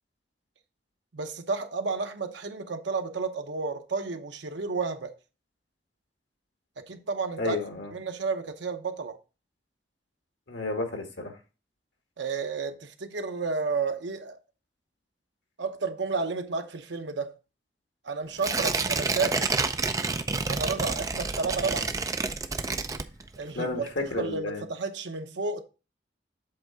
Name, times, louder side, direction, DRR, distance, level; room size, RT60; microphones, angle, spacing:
voice 1, 1.1-5.1 6.8-7.6 7.9-9.2 12.2-14.4 15.6-17.3 18.0-19.5 20.5-21.9 23.4-25.6, right 4 dB, 80° right, 0.8 m, -31 dB
voice 2, 7.4-7.9 10.5-11.3 23.6-24.6, left 3 dB, 85° left, 1.8 m, -31 dB
Tearing, 18.4-23.5 23.9-24.0, right 4 dB, 20° right, 0.3 m, -29 dB
7.8 x 3.7 x 4.5 m
head